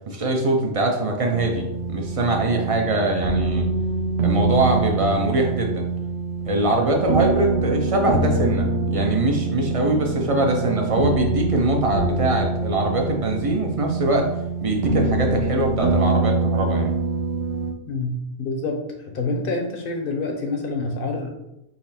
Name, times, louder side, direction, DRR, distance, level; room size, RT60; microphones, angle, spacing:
voice 1, 0.1-3.7 4.2-5.8 6.5-14.3 14.6-16.9, right 2 dB, 45° right, 2 dB, 0.4 m, -22 dB
sound 1, 1.3-17.7, right 3 dB, 65° right, 0.8 m, -24 dB
voice 2, 17.9-21.3, left 3 dB, 55° left, 3 dB, 0.8 m, -27 dB
4.2 x 2.9 x 4.2 m, 0.88 s
omnidirectional pair, 1.3 m